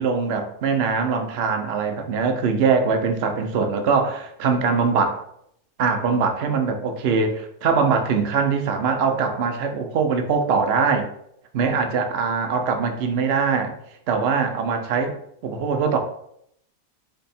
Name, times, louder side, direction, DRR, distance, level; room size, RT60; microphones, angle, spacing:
voice 1, 0.0-5.2 5.8-11.1 11.5-13.7 14.1-15.1 15.4-16.0, right 5 dB, 55° right, 5 dB, 0.8 m, -22 dB
3.8 x 3.4 x 4.2 m, 0.72 s
omnidirectional pair, 1.5 m